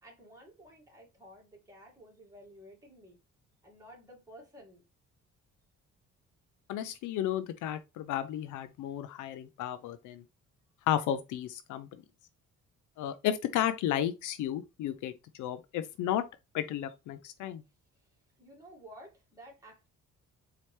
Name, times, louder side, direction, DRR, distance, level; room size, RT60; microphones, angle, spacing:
voice 1, 0.0-3.2 3.6-4.9 18.0-19.9, equal, 10° right, 2.0 m, -53 dB
voice 2, 6.7-10.2 10.9-12.0 13.0-16.3 16.5-17.6, left 11 dB, 80° left, 0.5 m, -33 dB
4.3 x 2.8 x 3.2 m
cardioid pair, 90°, 30 cm